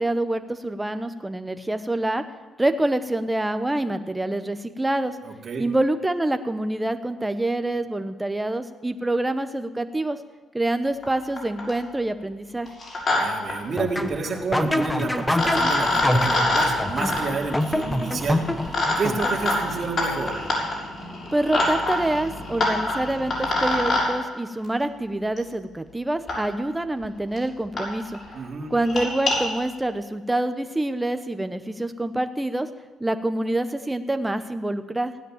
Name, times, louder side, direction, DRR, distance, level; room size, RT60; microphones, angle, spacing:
voice 1, 0.0-2.2 2.6-5.2 5.6-10.2 10.5-12.7 21.3-28.2 28.7-32.7 33.0-35.1, right 1 dB, 10° right, 9 dB, 1.1 m, -26 dB
voice 2, 5.2-5.6 13.2-20.4 28.3-28.7, right 4 dB, 50° right, 0 dB, 2.9 m, -30 dB
sound 1, 11.0-11.1 11.4-11.8 12.7-13.2 13.5-13.6 14.8-14.9 15.3-24.1 25.4-25.5 26.3-26.4 27.0-27.1 27.4-27.5 27.8-27.9 28.1-28.3 28.8-29.4, left 2 dB, 50° left, 6.2 m, -25 dB
sound 2, 13.8-19.7, left 1 dB, 10° left, 1.0 m, -26 dB
16.5 x 10.0 x 7.4 m, 1.3 s
cardioid pair, 90°, 0 cm